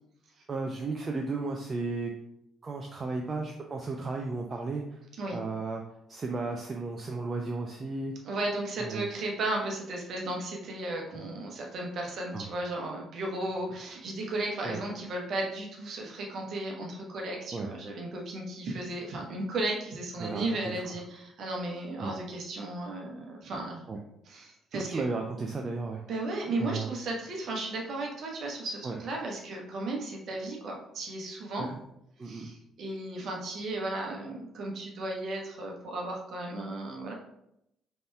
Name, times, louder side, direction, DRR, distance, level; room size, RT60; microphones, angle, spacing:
voice 1, 0.5-2.1 2.6-5.0 5.3-5.8 6.1-8.1 8.8-9.1 12.3-12.4 14.6-14.8 17.5-17.7 20.2-20.8 22.0-22.1 23.9-24.0 24.7-26.0 26.6-26.9 28.8-29.0 31.6-31.8 32.2-32.5, right 3 dB, 35° right, 2 dB, 0.5 m, -34 dB
voice 2, 8.2-23.8 24.2-25.0 26.1-31.7 32.2-37.1, right 2 dB, 50° right, 0 dB, 1.1 m, -35 dB
5.3 x 4.2 x 2.3 m, 0.80 s
figure-of-eight pair, 45°, 0 cm